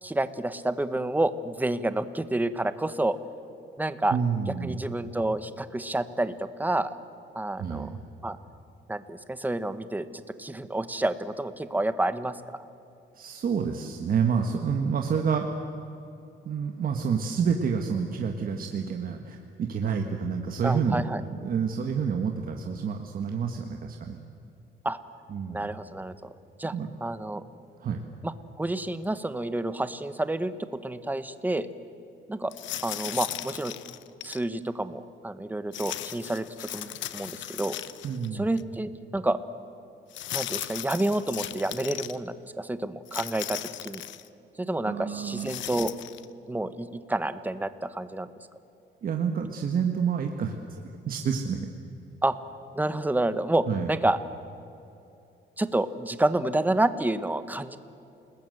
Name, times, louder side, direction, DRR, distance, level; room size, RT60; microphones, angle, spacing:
voice 1, 0.0-3.2 3.8-4.2 4.6-6.9 7.3-7.9 8.2-8.4 8.9-12.4 20.6-21.2 24.8-25.0 25.5-26.3 26.6-26.7 27.0-27.4 28.2-31.7 32.3-32.5 32.8-33.7 34.2-37.8 38.3-39.4 40.3-44.0 44.6-45.9 46.5-48.3 52.2-52.4 52.7-54.2 55.6-57.8, right 2 dB, 10° right, 12 dB, 1.1 m, -29 dB
voice 2, 4.1-4.8 7.6-8.0 13.1-15.5 16.4-21.0 21.3-24.2 25.3-25.7 26.7-26.9 27.8-28.0 38.0-38.5 44.8-45.5 49.0-50.5 51.0-51.6 53.7-53.9, right 6 dB, 50° right, 3 dB, 1.6 m, -28 dB
sound 1, 32.5-34.4 35.7-38.3 38.6-38.7 40.1-42.2 43.1-44.3 45.2-46.2, left 13 dB, 85° left, 0.9 m, -37 dB
29.0 x 20.0 x 8.0 m, 2.7 s
cardioid pair, 135°, 19 cm